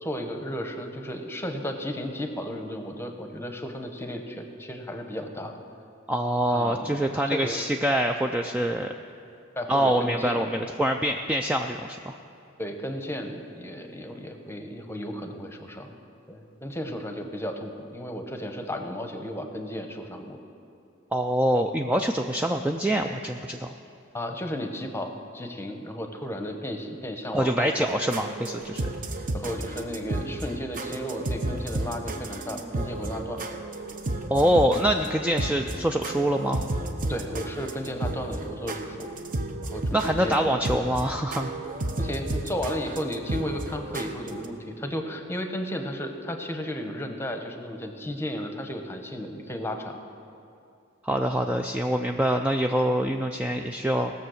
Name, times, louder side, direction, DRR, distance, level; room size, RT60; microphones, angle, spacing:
voice 1, 0.0-5.6 6.5-7.6 9.6-10.4 12.6-16.0 16.3-20.4 24.1-27.9 29.3-33.4 37.1-39.1 39.6-40.6 42.0-50.0, equal, 10° left, 5 dB, 0.9 m, -34 dB
voice 2, 6.1-8.9 9.7-12.1 21.1-23.7 27.3-28.9 34.3-36.6 39.9-41.5 51.0-54.1, right 1 dB, 5° right, 4 dB, 0.3 m, -25 dB
sound 1, 27.9-44.5, right 2 dB, 40° right, 0.8 m, -33 dB
17.5 x 6.8 x 6.4 m, 2.6 s
head